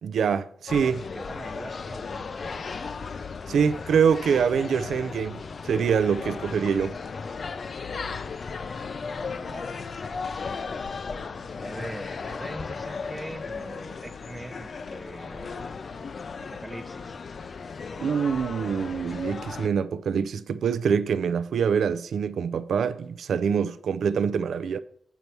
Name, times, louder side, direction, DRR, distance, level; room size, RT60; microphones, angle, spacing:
voice 1, 0.0-1.0 3.5-5.4 5.6-7.0 18.0-24.8, right 6 dB, 80° right, 0.4 m, -25 dB
sound 1, 0.7-19.7, left 5 dB, 50° left, 0.5 m, -36 dB
voice 2, 0.8-2.7 9.3-9.7 11.6-15.6 16.4-17.2, right 1 dB, 10° right, 0.6 m, -41 dB
8.2 x 5.4 x 4.5 m
wide cardioid pair, 120°, 0 cm